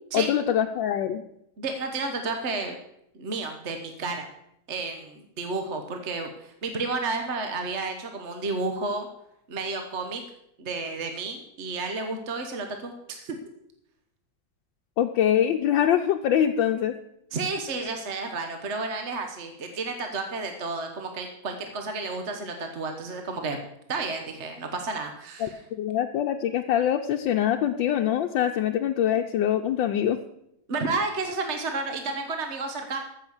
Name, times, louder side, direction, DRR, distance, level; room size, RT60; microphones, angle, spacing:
voice 1, 0.1-1.2 15.0-16.9 25.4-30.2, left 10 dB, 85° left, 3 dB, 1.4 m, -24 dB
voice 2, 1.6-2.7 3.2-4.3 4.7-9.1 9.5-10.2 10.6-13.4 17.3-23.6 23.9-25.6 30.7-33.0, right 3 dB, 40° right, 5 dB, 1.3 m, -31 dB
15.0 x 6.6 x 7.1 m, 0.77 s
omnidirectional pair, 2.0 m